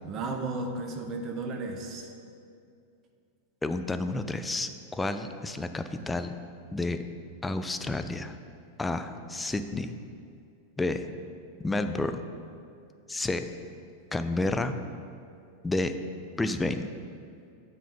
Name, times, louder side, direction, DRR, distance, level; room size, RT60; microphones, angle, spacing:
voice 1, 0.0-2.1, right 3 dB, 35° right, 4 dB, 0.8 m, -34 dB
voice 2, 3.6-6.3 6.7-7.0 7.4-8.3 8.8-9.9 10.8-11.0 11.6-12.1 13.1-13.4 14.1-14.7 15.6-15.9 16.4-16.9, left 2 dB, 10° left, 9 dB, 0.4 m, -30 dB
7.3 x 4.1 x 5.4 m, 2.4 s
figure-of-eight pair, 90°, 0 cm